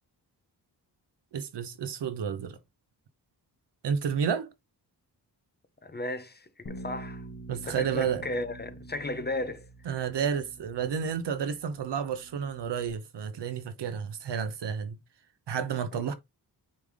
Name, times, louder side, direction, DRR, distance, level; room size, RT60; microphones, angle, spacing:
voice 1, 1.3-2.6 3.8-4.5 7.5-8.2 9.9-15.0 15.5-16.1, right 7 dB, 80° right, 1.0 m, -31 dB
voice 2, 5.8-10.0 16.0-16.1, left 2 dB, 25° left, 0.8 m, -36 dB
Bass guitar, 6.6-12.9, right 1 dB, 45° left, 2.0 m, -46 dB
8.8 x 3.4 x 3.6 m
wide cardioid pair, 145°, 41 cm